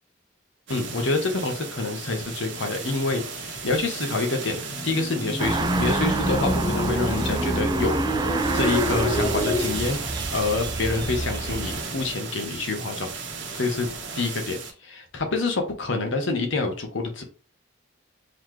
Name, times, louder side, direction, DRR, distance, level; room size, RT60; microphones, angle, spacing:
voice 1, 0.7-10.0 10.3-13.1 13.5-13.9 14.1-14.6 14.8-17.2, left 3 dB, 65° left, 1.0 m, -27 dB
sound 1, 0.7-14.7, right 4 dB, 65° right, 1.1 m, -35 dB
sound 2, 4.2-9.7, left 1 dB, 20° left, 0.6 m, -27 dB
sound 3, 5.4-11.8, right 3 dB, 20° right, 0.3 m, -29 dB
4.0 x 3.0 x 3.2 m
head